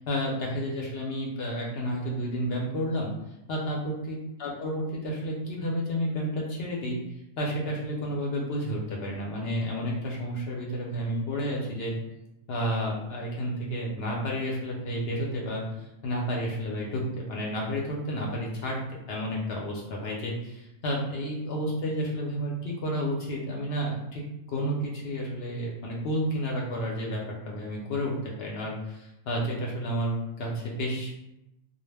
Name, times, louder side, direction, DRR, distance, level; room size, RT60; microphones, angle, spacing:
voice 1, 0.0-3.1 3.5-7.0 7.4-11.9 12.5-24.2 24.5-31.1, equal, 65° left, -2 dB, 0.6 m, -31 dB
2.2 x 2.0 x 3.2 m, 0.90 s
omnidirectional pair, 1.4 m